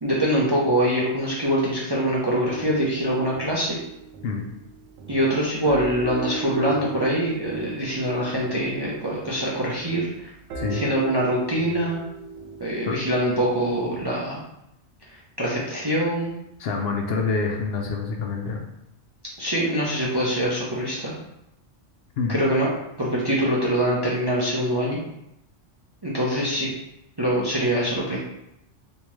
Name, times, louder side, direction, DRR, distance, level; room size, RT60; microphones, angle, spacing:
voice 1, 0.0-3.8 5.1-10.3 10.7-12.0 12.6-14.4 15.4-16.3 19.4-21.1 22.3-22.7 23.0-25.0 26.0-26.7 27.2-28.2, equal, 30° right, -5 dB, 0.5 m, -24 dB
sound 1, 2.4-14.0, right 5 dB, 80° right, 0.9 m, -38 dB
voice 2, 16.6-18.6 22.2-22.4, left 4 dB, 65° left, 1 dB, 0.7 m, -26 dB
3.4 x 2.8 x 3.1 m, 0.82 s
omnidirectional pair, 1.2 m